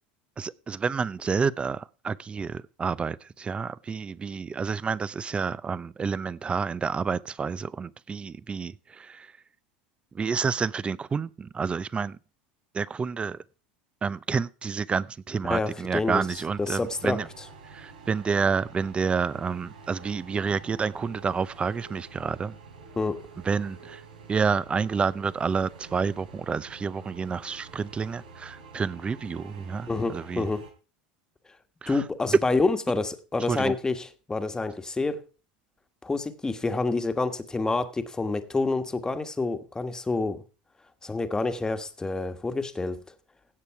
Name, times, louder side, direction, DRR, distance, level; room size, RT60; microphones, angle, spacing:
voice 1, 0.4-9.3 10.1-12.2 12.7-13.4 14.0-17.3 17.7-22.5 23.4-24.0 24.3-30.5 31.8-32.0 33.5-33.7, right 5 dB, 25° right, 0.6 m, -29 dB
voice 2, 15.5-16.2 16.6-17.2 22.9-23.2 29.9-30.7 31.9-35.2 36.0-40.4 41.0-43.0, left 3 dB, 15° left, 1.4 m, -28 dB
sound 1, 16.1-30.7, right 5 dB, 80° right, 3.4 m, -48 dB
16.0 x 6.7 x 4.7 m
hypercardioid pair, 90°, 5 cm